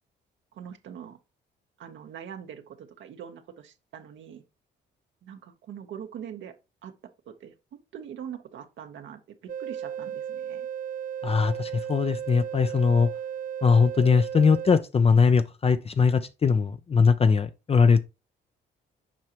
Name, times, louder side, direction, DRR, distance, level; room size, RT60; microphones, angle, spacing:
voice 1, 0.5-1.2 1.8-4.4 5.2-6.5 6.8-6.9 7.3-7.5 7.9-9.2 9.6-10.7, right 8 dB, 70° right, 0.9 m, -42 dB
sound 1, 9.5-14.8, right 9 dB, 45° right, 0.4 m, -35 dB
voice 2, 11.2-13.1 13.6-18.0, left 5 dB, 30° left, 0.5 m, -21 dB
7.5 x 4.8 x 2.9 m
cardioid pair, 90°, 20 cm